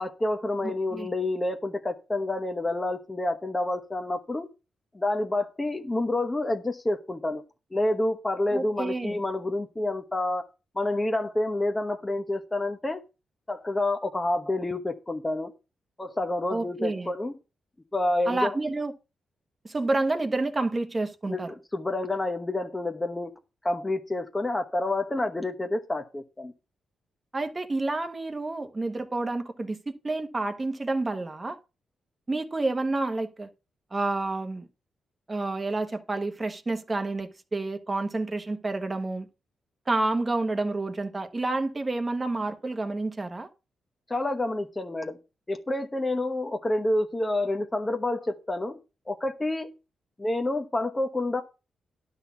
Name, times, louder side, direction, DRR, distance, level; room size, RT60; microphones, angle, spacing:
voice 1, 0.0-4.5 4.9-7.4 7.7-10.4 10.8-13.0 13.5-15.5 16.0-17.3 17.9-18.5 21.3-23.3 23.6-26.5 44.1-45.2 45.5-48.8 49.1-49.7 50.2-51.4, left 2 dB, 15° left, 1.0 m, -28 dB
voice 2, 0.6-1.1 8.5-9.2 16.5-17.1 18.3-18.9 19.6-21.5 27.3-29.8 30.0-31.6 32.3-33.5 33.9-34.7 35.3-39.3 39.9-43.5, right 2 dB, 20° right, 1.2 m, -29 dB
12.0 x 4.3 x 7.0 m
wide cardioid pair, 140°, 0 cm